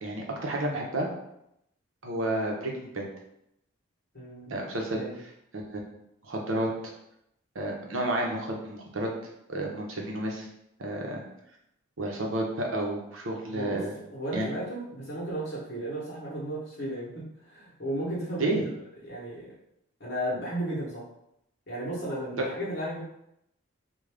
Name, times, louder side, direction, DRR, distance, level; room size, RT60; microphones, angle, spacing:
voice 1, 0.0-1.1 2.0-3.1 4.5-5.0 5.5-5.8 6.2-6.7 7.5-9.1 9.5-10.5 10.8-11.2 12.0-13.9 14.3-14.5 18.4-18.6 22.4-22.5, right 1 dB, 70° right, 0 dB, 0.8 m, -31 dB
voice 2, 4.1-4.5 5.0-5.2 13.5-18.6 19.0-19.5 20.0-21.0 21.7-23.0, right 1 dB, 50° left, -6 dB, 0.9 m, -34 dB
3.7 x 2.3 x 3.3 m, 0.80 s
head